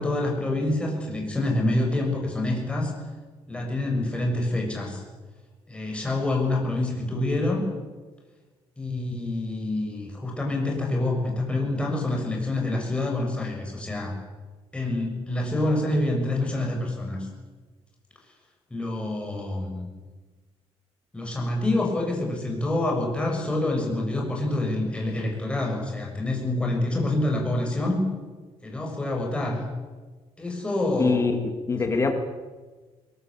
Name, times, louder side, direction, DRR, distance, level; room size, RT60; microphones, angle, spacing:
voice 1, 0.0-2.9 3.5-5.0 5.7-7.6 8.8-14.1 14.7-17.3 18.7-19.9 21.1-28.0 28.6-29.6 30.4-31.2 31.9-32.0, left 2 dB, 10° left, 0 dB, 6.4 m, -27 dB
voice 2, 31.0-32.1, left 4 dB, 25° left, 6 dB, 2.2 m, -24 dB
21.5 x 20.5 x 8.6 m, 1.3 s
cardioid pair, 150°, 11 cm